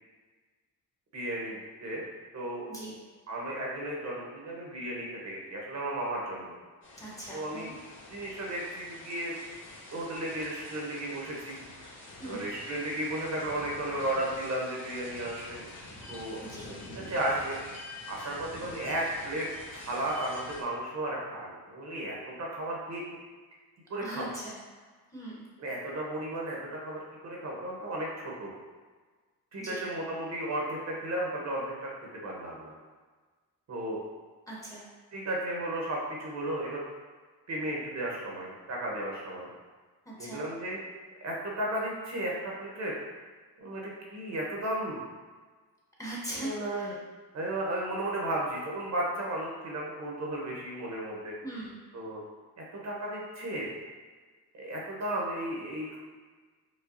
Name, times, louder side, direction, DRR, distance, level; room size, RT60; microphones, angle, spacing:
voice 1, 1.1-2.0 2.3-2.6 3.3-6.5 7.3-7.8 8.1-9.3 9.9-11.6 12.2-15.6 16.1-17.6 18.1-19.5 19.7-23.0 23.9-24.3 25.6-28.5 29.5-31.9 32.2-32.7 33.7-34.0 35.1-36.8 37.5-39.5 40.2-40.8 41.2-43.0 43.6-45.0 46.3-46.9 47.3-51.4 51.9-52.2 52.6-53.7 54.5-56.0, right 1 dB, 45° right, -3 dB, 0.9 m, -34 dB
sound 1, 6.8-20.6, left 2 dB, 30° left, 1.3 m, -47 dB
voice 2, 7.0-7.7 12.2-12.4 16.4-16.7 24.0-24.5 25.1-25.4 29.6-29.8 34.5-34.9 40.1-40.4 46.0-46.9 51.4-51.8, right 1 dB, 10° left, -6 dB, 1.0 m, -40 dB
4.9 x 2.3 x 2.6 m, 1.4 s
cardioid pair, 90°, 38 cm